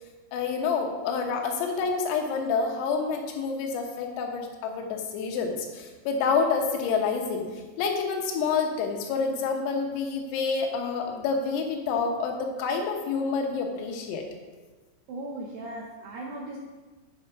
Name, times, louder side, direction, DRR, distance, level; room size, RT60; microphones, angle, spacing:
voice 1, 0.3-14.2, left 5 dB, 85° left, 3 dB, 3.7 m, -28 dB
voice 2, 15.1-16.6, right 2 dB, 75° right, -2 dB, 2.5 m, -37 dB
9.2 x 5.6 x 5.7 m, 1.3 s
omnidirectional pair, 5.9 m